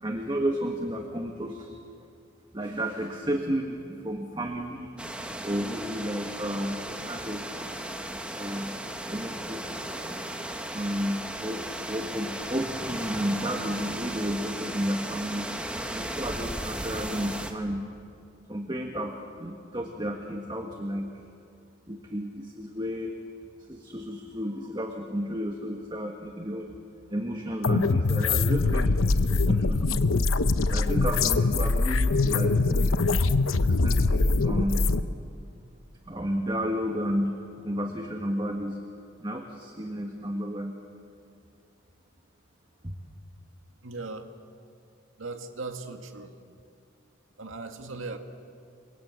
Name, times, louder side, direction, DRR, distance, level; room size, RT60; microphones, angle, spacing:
voice 1, 0.0-1.8 2.5-5.0 5.4-7.4 8.3-9.8 10.7-15.5 15.9-17.8 18.5-21.1 21.9-23.1 23.6-26.7 27.1-30.0 30.6-33.0 33.6-34.9 36.1-38.8 39.2-40.8 42.8-42.9, equal, 20° right, 2 dB, 1.6 m, -32 dB
sound 1, 5.0-17.5, right 1 dB, 5° right, 1.5 m, -36 dB
sound 2, 27.6-35.0, left 3 dB, 90° left, 0.9 m, -23 dB
voice 2, 43.8-44.3 45.2-46.3 47.4-48.2, right 3 dB, 80° right, 5 dB, 2.1 m, -38 dB
28.0 x 23.0 x 8.3 m, 2.4 s
head